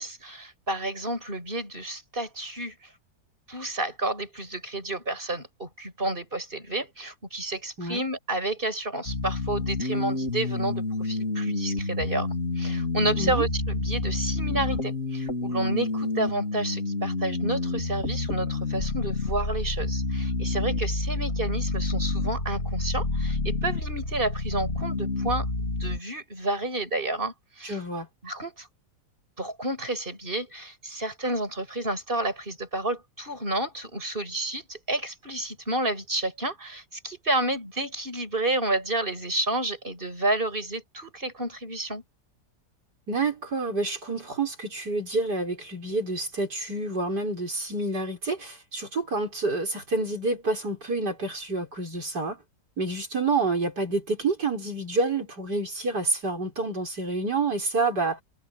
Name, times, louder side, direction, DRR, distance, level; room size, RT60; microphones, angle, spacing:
voice 1, 0.0-2.8 3.5-12.3 12.6-27.8 28.2-28.7 29.4-42.0, right 1 dB, 30° right, 7.6 m, -30 dB
sound 1, 9.1-26.0, left 3 dB, 45° left, 4.1 m, -29 dB
voice 2, 13.1-13.4 27.6-28.1 43.1-52.4 52.8-58.2, right 3 dB, 75° right, 6.7 m, -28 dB
omnidirectional pair, 1.8 m